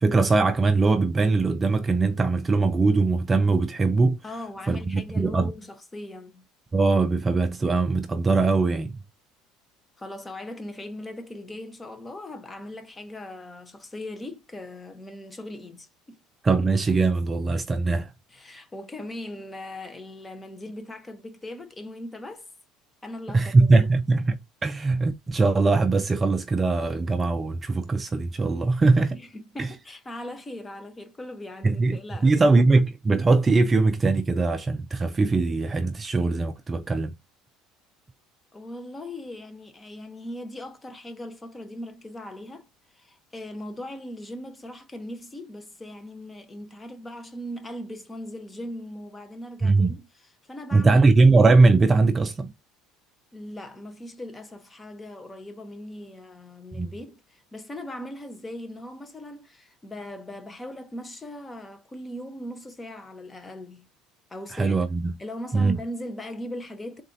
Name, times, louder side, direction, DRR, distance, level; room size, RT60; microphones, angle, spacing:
voice 1, 0.0-4.2 4.7-5.5 6.7-9.0 16.4-18.1 23.3-29.2 29.6-29.7 31.6-37.1 49.6-49.9 50.7-52.5 56.7-56.9 64.5-65.1 65.5-65.8, right 3 dB, 20° right, 0.3 m, -21 dB
voice 2, 4.2-6.4 10.0-16.2 18.3-22.5 23.0-23.9 29.1-32.4 38.5-42.7 43.0-50.1 50.5-51.0 53.3-63.9 64.3-64.8 65.2-67.0, left 1 dB, 15° left, 0.7 m, -39 dB
3.9 x 2.6 x 3.8 m
cardioid pair, 135°, 0 cm